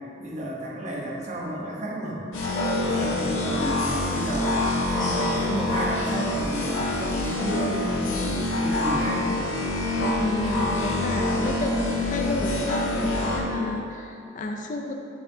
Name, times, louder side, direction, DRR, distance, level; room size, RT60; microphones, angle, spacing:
voice 1, 0.2-2.2 2.7-4.6 4.9-9.4, right 1 dB, 35° right, -3 dB, 0.9 m, -32 dB
sound 1, 2.3-13.4, left 2 dB, 70° left, 1.1 m, -26 dB
voice 2, 10.0-14.9, left 2 dB, 40° left, 3 dB, 0.4 m, -30 dB
8.5 x 5.9 x 2.7 m, 2.7 s
head